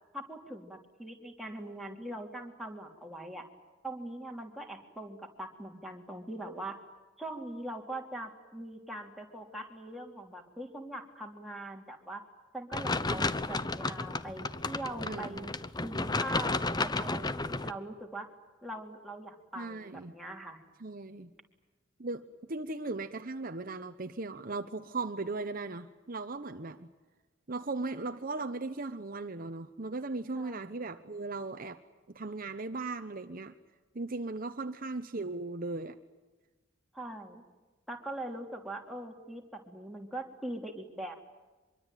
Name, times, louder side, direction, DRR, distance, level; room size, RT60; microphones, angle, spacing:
voice 1, 0.1-3.5 3.8-6.8 7.2-12.2 12.5-15.5 15.8-18.3 18.6-20.6 30.3-30.6 36.9-37.4 37.9-41.2, right 1 dB, ahead, 0 dB, 3.4 m, -42 dB
sound 1, 12.7-17.7, left 3 dB, 20° left, 0.9 m, -32 dB
voice 2, 15.0-15.5 19.6-20.1 20.8-21.3 22.0-26.9 27.5-31.8 32.1-33.5 33.9-36.0, right 3 dB, 45° right, 8 dB, 1.1 m, -37 dB
25.0 x 23.5 x 9.2 m, 1.2 s
head